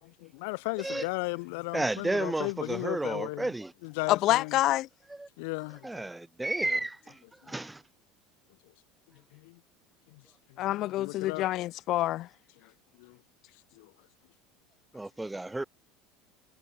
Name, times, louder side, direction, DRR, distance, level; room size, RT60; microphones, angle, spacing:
voice 1, 0.0-3.5 3.8-4.6 5.4-6.0 7.4-7.5 9.3-9.6 10.1-10.2 10.7-11.5 12.6-12.7 13.0-13.2 13.7-13.9, left 28 dB, 70° left, 3.1 m, -36 dB
voice 2, 1.7-3.7 5.1-5.3 5.8-7.8 14.9-15.6, right 2 dB, 10° right, 5.3 m, -32 dB
voice 3, 4.1-4.9 10.6-12.3, left 15 dB, 55° left, 3.0 m, -27 dB
hypercardioid pair, 75°, 0 cm